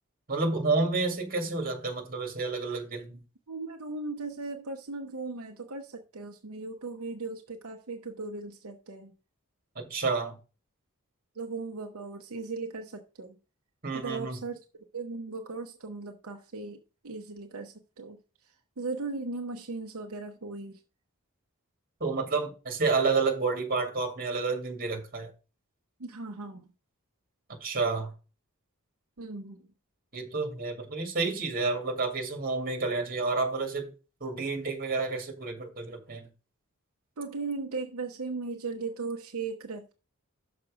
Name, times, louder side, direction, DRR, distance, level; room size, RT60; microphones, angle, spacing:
voice 1, 0.3-3.2 9.8-10.3 13.8-14.4 22.0-25.3 27.6-28.1 30.1-33.9 34.2-36.3, right 3 dB, 45° right, 2.2 m, -30 dB
voice 2, 3.5-9.1 11.3-13.4 13.9-20.8 26.0-26.7 29.2-29.7 37.2-39.9, right 3 dB, 75° right, 0.8 m, -38 dB
6.5 x 5.9 x 4.8 m
head